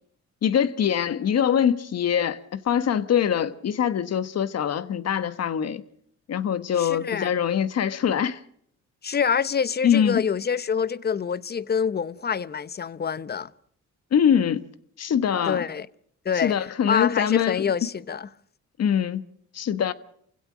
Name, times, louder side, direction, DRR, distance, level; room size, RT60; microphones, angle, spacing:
voice 1, 0.4-5.8 6.3-8.4 9.8-10.2 14.1-14.7 15.0-15.6 16.3-17.6 18.8-19.2 19.5-19.9, left 8 dB, 55° left, 1.4 m, -23 dB
voice 2, 6.8-7.3 9.0-13.5 15.4-15.9 16.2-16.6 16.9-18.3, left 7 dB, 35° left, 0.8 m, -26 dB
28.5 x 16.5 x 6.2 m
cardioid pair, 90°, 30 cm